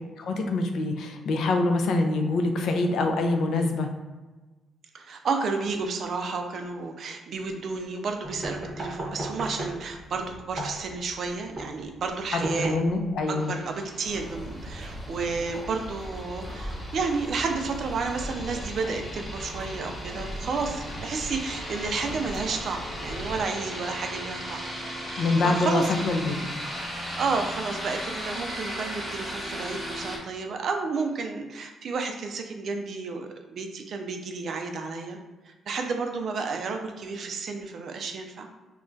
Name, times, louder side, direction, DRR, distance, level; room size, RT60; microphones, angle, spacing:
voice 1, 0.2-3.9 12.3-13.5 25.2-26.5, left 2 dB, 75° left, 4 dB, 0.4 m, -25 dB
voice 2, 4.9-12.8 13.3-24.6 25.0-26.1 27.2-35.2 35.4-38.5, right 4 dB, 60° right, 4 dB, 0.4 m, -31 dB
sound 1, 8.2-13.2, right 1 dB, 30° right, 0.7 m, -36 dB
sound 2, 13.4-30.2, equal, ahead, 1.0 m, -37 dB
sound 3, 14.0-23.5, equal, 25° left, 0.8 m, -39 dB
2.3 x 2.1 x 3.8 m, 1.2 s
cardioid pair, 90°, 0 cm